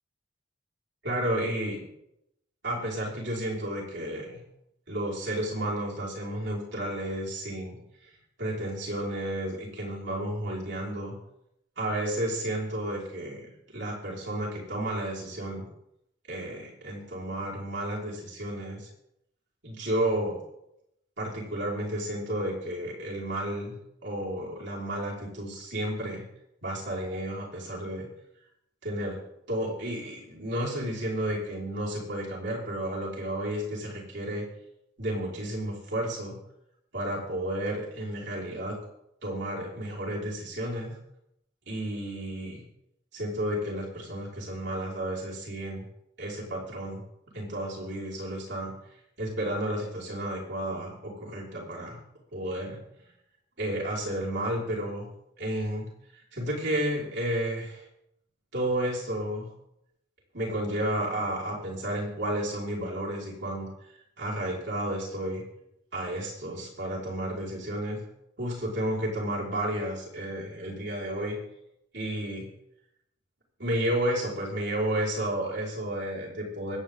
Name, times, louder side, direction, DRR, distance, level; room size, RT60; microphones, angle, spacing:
voice 1, 1.0-1.8 2.6-4.4 4.9-7.8 8.0-8.1 8.4-11.1 11.8-15.7 16.3-18.9 19.6-20.4 21.2-23.8 24.0-26.2 26.6-28.1 28.8-29.2 29.5-34.5 35.0-36.4 36.9-38.8 39.2-40.9 41.7-42.6 43.1-45.9 46.2-47.0 47.3-48.7 49.2-52.0 52.3-52.8 53.6-55.1 55.4-55.9 56.1-57.8 58.5-59.5 60.3-63.7 64.2-65.4 65.9-68.0 68.4-71.4 71.9-72.5 73.6-76.8, right 1 dB, 65° right, -5 dB, 5.3 m, -32 dB
25.0 x 9.1 x 3.8 m, 0.81 s
head